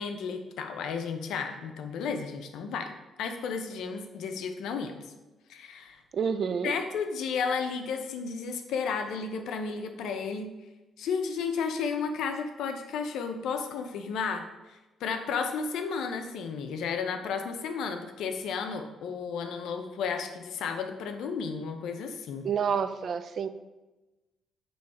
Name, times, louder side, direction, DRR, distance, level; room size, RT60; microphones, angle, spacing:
voice 1, 0.0-5.0 5.5-6.0 6.6-10.5 11.0-22.5, left 5 dB, 80° left, 6 dB, 0.6 m, -33 dB
voice 2, 6.1-6.7 22.4-23.5, right 7 dB, 55° right, 12 dB, 0.4 m, -28 dB
7.1 x 3.1 x 4.6 m, 1.1 s
cardioid pair, 90°, 0 cm